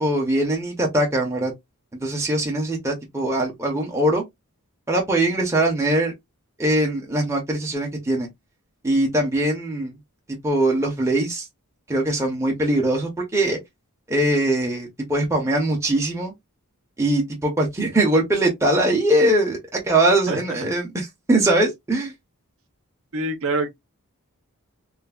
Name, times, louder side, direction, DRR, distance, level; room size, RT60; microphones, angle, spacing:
voice 1, 0.0-1.5 1.9-4.2 4.9-6.1 6.6-8.3 8.8-10.0 10.4-11.5 11.9-13.6 14.1-16.3 17.0-22.1, right 1 dB, 15° right, 0.6 m, -21 dB
voice 2, 23.1-23.7, right 2 dB, 65° right, 0.7 m, -24 dB
3.2 x 2.1 x 2.3 m
head